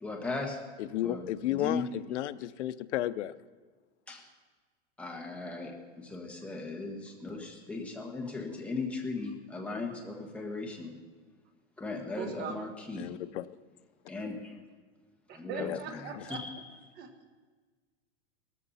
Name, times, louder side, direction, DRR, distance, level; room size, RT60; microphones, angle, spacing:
voice 1, 0.0-0.6 1.0-1.9 4.1-4.2 5.0-10.9 11.8-13.1 14.1-14.6 15.3-16.5, left 3 dB, 5° left, 0 dB, 1.4 m, -38 dB
voice 2, 0.8-3.3 13.0-13.4 15.6-15.8 16.2-16.3, left 14 dB, 90° left, 14 dB, 0.7 m, -33 dB
voice 3, 12.1-12.6 15.3-16.4 17.0-17.3, right 7 dB, 30° right, 6 dB, 1.3 m, -40 dB
18.0 x 14.0 x 4.2 m, 1.4 s
supercardioid pair, 165°, 34 cm